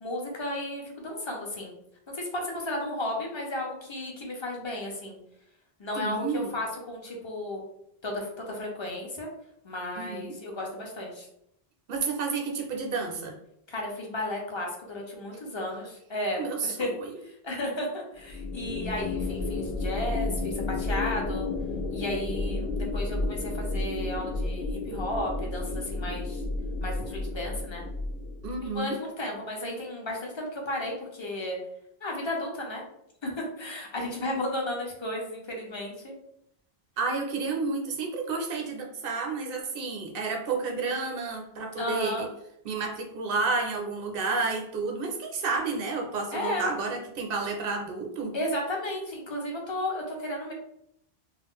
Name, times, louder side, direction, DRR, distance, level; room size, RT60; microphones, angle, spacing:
voice 1, 0.0-1.7 2.1-5.2 5.8-7.6 8.0-9.3 9.6-11.3 13.7-16.9 17.2-21.5 21.9-26.4 26.8-27.8 28.6-31.6 32.0-32.8 33.2-36.1 41.8-42.3 46.3-46.7 48.3-50.5, left 1 dB, 35° left, -1 dB, 0.5 m, -33 dB
voice 2, 6.0-6.5 10.0-10.3 11.9-13.3 16.4-16.7 28.4-29.0 37.0-42.2 42.6-48.3, right 4 dB, 65° right, 2 dB, 0.7 m, -30 dB
sound 1, 18.2-28.7, left 2 dB, 90° left, 0.8 m, -32 dB
2.4 x 2.0 x 3.5 m, 0.75 s
omnidirectional pair, 1.1 m